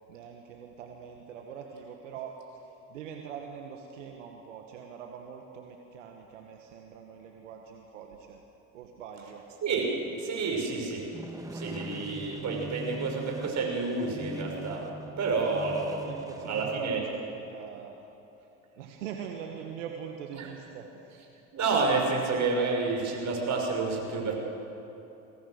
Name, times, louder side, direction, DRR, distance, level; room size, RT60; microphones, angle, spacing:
voice 1, 0.1-2.3 2.9-8.4 8.7-9.4 15.3-15.6 16.0-17.9 18.8-21.2, right 7 dB, 85° right, 2 dB, 1.5 m, -43 dB
voice 2, 9.6-9.9 10.2-11.1 11.5-14.9 15.2-17.0 20.3-20.5 21.5-24.3, right 4 dB, 50° right, 0 dB, 6.0 m, -29 dB
sound 1, 11.1-16.8, right 2 dB, 10° right, 1.9 m, -42 dB
23.5 x 17.5 x 6.6 m, 3.0 s
hypercardioid pair, 70°, 36 cm